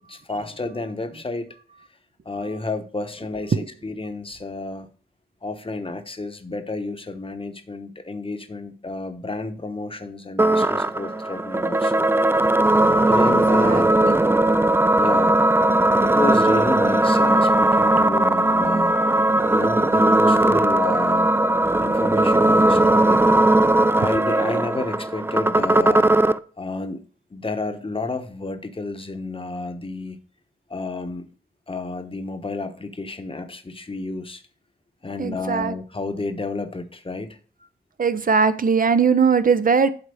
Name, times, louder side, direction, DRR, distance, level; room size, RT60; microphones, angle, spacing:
voice 1, 0.1-1.5 2.2-4.9 5.4-12.1 13.1-13.9 15.0-15.4 16.0-19.0 19.5-21.3 21.8-23.2 23.9-26.1 26.6-27.0 27.3-30.2 30.7-31.3 31.7-34.4 35.0-37.4, left 3 dB, 30° left, 8 dB, 1.0 m, -31 dB
sound 1, 10.4-26.4, right 1 dB, 15° right, 0.3 m, -18 dB
voice 2, 13.2-14.2 35.2-35.7 38.0-39.9, right 5 dB, 55° right, 11 dB, 0.6 m, -20 dB
7.9 x 4.3 x 6.9 m, 0.41 s
wide cardioid pair, 85°, 17 cm